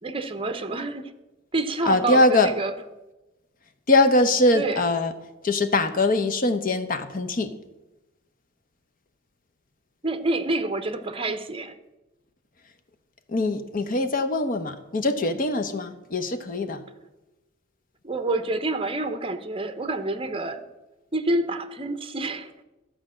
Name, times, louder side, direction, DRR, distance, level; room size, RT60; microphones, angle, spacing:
voice 1, 0.0-1.1 1.5-2.7 4.5-4.8 10.0-11.7 18.0-20.6 21.1-22.6, right 2 dB, 25° right, 9 dB, 0.8 m, -28 dB
voice 2, 1.9-2.5 3.9-5.1 5.4-7.5 13.3-16.8, left 2 dB, 45° left, 9 dB, 0.8 m, -22 dB
12.5 x 5.1 x 7.5 m, 1.0 s
head